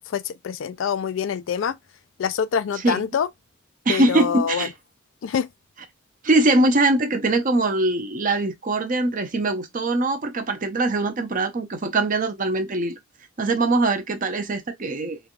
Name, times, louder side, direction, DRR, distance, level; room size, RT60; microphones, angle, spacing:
voice 1, 0.0-1.8 2.2-3.3 3.9-4.7 5.2-5.5, left 7 dB, 65° left, 0.3 m, -25 dB
voice 2, 3.9-4.7 6.2-13.0 13.4-15.2, right 2 dB, 40° right, 0.7 m, -22 dB
3.2 x 2.3 x 2.4 m
head